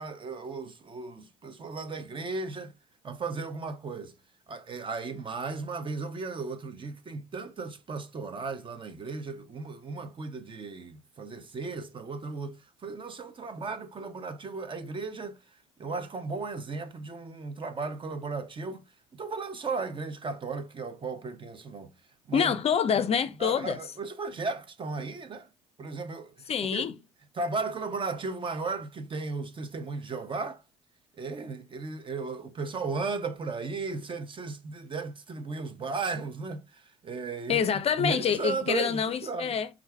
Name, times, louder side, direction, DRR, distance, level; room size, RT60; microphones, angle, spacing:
voice 1, 0.0-2.7 3.0-4.1 4.5-18.8 19.1-21.9 22.3-22.5 23.4-25.5 25.8-26.9 27.3-30.6 31.1-37.7 38.0-39.6, right 4 dB, 30° right, 0.7 m, -35 dB
voice 2, 22.3-23.8 26.5-26.9 37.5-39.7, left 7 dB, 40° left, 0.5 m, -26 dB
4.5 x 2.5 x 3.2 m
hypercardioid pair, 60°, 16 cm